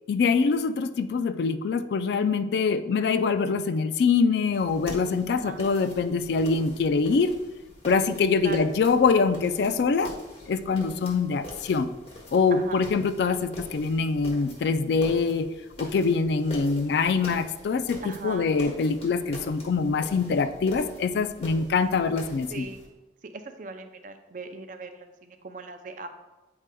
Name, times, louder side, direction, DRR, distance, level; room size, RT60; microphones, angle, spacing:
voice 1, 0.1-7.4 7.8-10.2 10.5-11.9 12.3-15.5 15.8-22.7, left 4 dB, 60° left, 11 dB, 0.3 m, -24 dB
sound 1, 4.5-22.9, equal, 30° left, 1.2 m, -44 dB
voice 2, 5.3-5.6 8.4-8.6 12.5-12.8 18.0-18.5 22.5-22.8 23.2-26.1, right 3 dB, 45° right, 7 dB, 0.5 m, -39 dB
8.7 x 4.8 x 2.2 m, 1.1 s
head